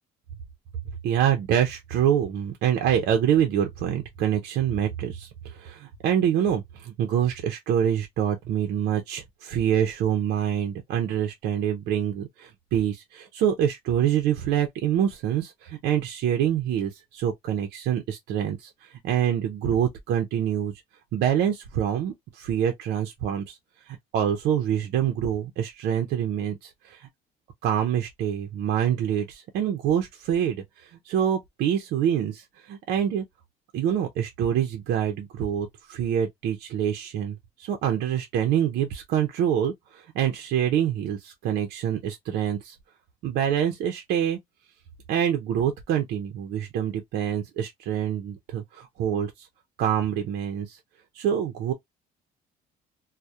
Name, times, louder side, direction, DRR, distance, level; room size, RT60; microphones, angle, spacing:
voice 1, 1.0-20.7 21.1-23.6 23.9-27.1 27.6-33.2 33.7-42.8 43.2-44.4 45.1-49.5 49.8-50.8 51.1-51.7, right 9 dB, 75° right, 0.5 m, -26 dB
2.2 x 2.0 x 2.7 m
cardioid pair, 110°, 17 cm